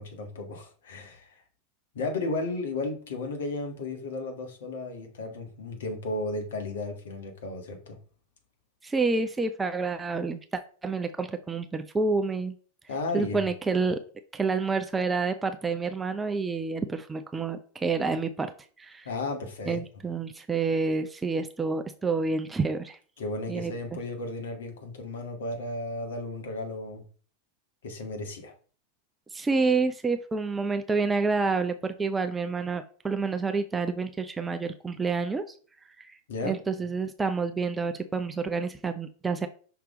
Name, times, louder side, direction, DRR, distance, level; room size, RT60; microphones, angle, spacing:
voice 1, 0.0-1.4 1.9-8.0 12.9-13.5 19.0-19.8 23.2-27.0 27.8-28.5 36.3-36.6, left 2 dB, 60° left, 1.7 m, -34 dB
voice 2, 8.8-12.6 13.1-14.0 14.3-18.5 18.8-19.1 19.7-23.0 23.5-23.7 29.3-35.4 36.0-36.1 36.4-39.5, right 4 dB, 10° right, 0.5 m, -28 dB
5.8 x 3.4 x 4.9 m
figure-of-eight pair, 90°, 0 cm